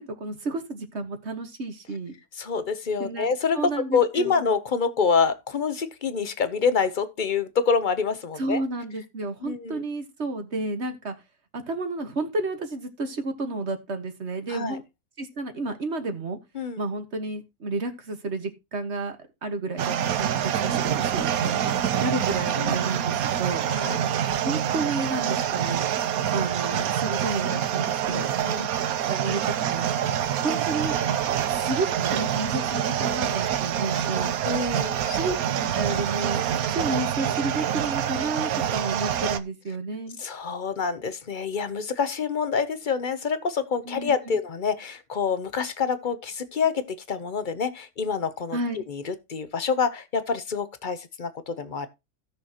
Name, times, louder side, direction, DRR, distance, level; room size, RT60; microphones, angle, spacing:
voice 1, 0.0-2.2 3.0-3.3 3.6-4.5 8.4-11.2 11.5-14.8 15.2-16.4 16.8-21.5 22.0-23.6 24.4-25.9 26.3-28.3 29.1-29.9 30.4-31.2 31.5-34.4 35.1-40.2 43.9-44.4 48.5-48.8, right 2 dB, 45° right, 1.6 m, -31 dB
voice 2, 2.3-3.6 3.9-8.6 9.4-9.8 14.5-14.8 16.5-16.8 22.0-22.2 22.6-22.8 23.7-24.0 28.1-28.7 30.1-30.3 34.4-35.2 40.2-51.9, left 5 dB, 40° left, 0.8 m, -27 dB
sound 1, 19.8-39.4, right 9 dB, 70° right, 1.1 m, -26 dB
16.5 x 6.4 x 2.9 m
omnidirectional pair, 1.7 m